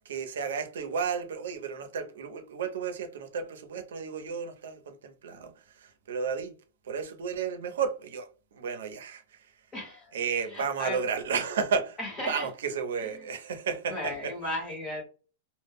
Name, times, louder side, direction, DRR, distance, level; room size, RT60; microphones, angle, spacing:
voice 1, 0.1-6.5 6.8-9.5 10.1-12.0 12.3-14.3, right 6 dB, 80° right, 0.6 m, -33 dB
voice 2, 9.7-10.1 10.5-11.0 12.0-12.5 13.9-15.0, left 1 dB, 15° left, 0.9 m, -35 dB
2.2 x 2.0 x 3.4 m
supercardioid pair, 180°, 0 cm